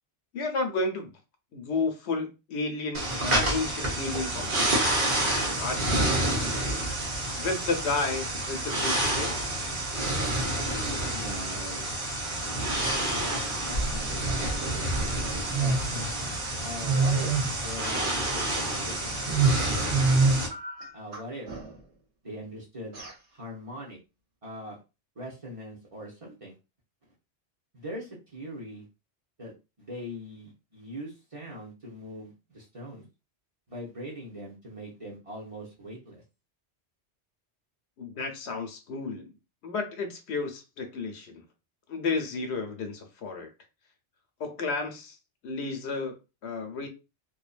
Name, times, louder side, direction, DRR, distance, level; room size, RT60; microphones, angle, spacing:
voice 1, 0.3-1.1 1.5-4.7 5.6-6.1 7.4-9.4 38.0-39.3 39.6-41.4 41.9-43.5 44.4-45.2 45.4-46.2 46.4-46.9, left 3 dB, 70° left, 0.9 m, -32 dB
sound 1, 2.9-20.5, right 2 dB, 50° right, 1.0 m, -27 dB
voice 2, 10.6-11.9 12.5-15.3 15.6-15.8 16.6-17.3 17.6-20.0 20.9-21.5 22.2-23.0 23.3-24.0 24.4-24.8 25.2-26.5 27.7-28.8 29.4-29.5 29.8-33.0 33.7-36.2, equal, 35° right, 0.7 m, -41 dB
sound 2, 17.1-17.9 18.4-20.1 20.5-22.0 22.9-23.2, right 1 dB, 75° right, 1.1 m, -44 dB
2.6 x 2.2 x 2.4 m
omnidirectional pair, 1.2 m